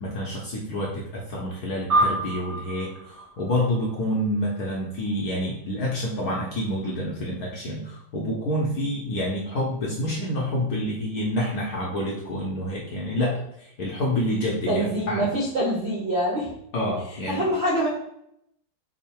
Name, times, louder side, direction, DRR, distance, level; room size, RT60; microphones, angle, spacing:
voice 1, 0.0-15.3 16.7-17.4, left 1 dB, 70° left, -4 dB, 0.9 m, -28 dB
sound 1, 1.9-4.6, right 2 dB, 50° right, 1.4 m, -28 dB
voice 2, 14.7-16.5 17.3-17.9, equal, 90° right, -4 dB, 0.5 m, -25 dB
3.7 x 2.1 x 4.3 m, 0.77 s
omnidirectional pair, 2.3 m